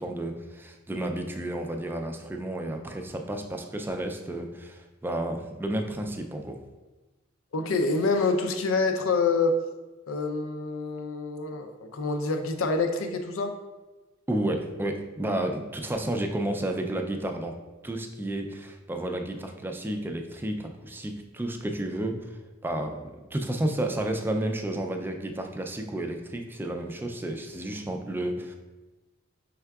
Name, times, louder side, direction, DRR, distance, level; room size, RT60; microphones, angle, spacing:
voice 1, 0.0-6.6 14.3-17.6 17.8-22.3 22.6-28.6, right 1 dB, 10° right, 4 dB, 0.3 m, -31 dB
voice 2, 7.5-9.6 10.1-13.5, left 3 dB, 85° left, 5 dB, 0.5 m, -26 dB
5.6 x 3.5 x 2.3 m, 1.2 s
head